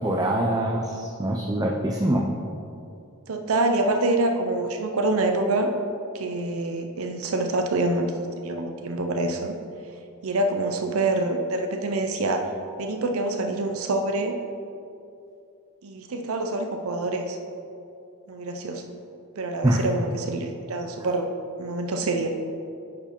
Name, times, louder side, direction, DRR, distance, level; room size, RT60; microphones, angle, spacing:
voice 1, 0.0-2.3 19.6-19.8, right 1 dB, 15° right, 0 dB, 0.5 m, -24 dB
voice 2, 3.3-5.7 6.1-9.6 10.2-12.5 12.8-14.3 15.8-17.4 18.3-18.8 19.4-21.3 21.6-22.3, right 2 dB, 70° right, 5 dB, 0.6 m, -26 dB
10.5 x 4.8 x 4.4 m, 2.6 s
head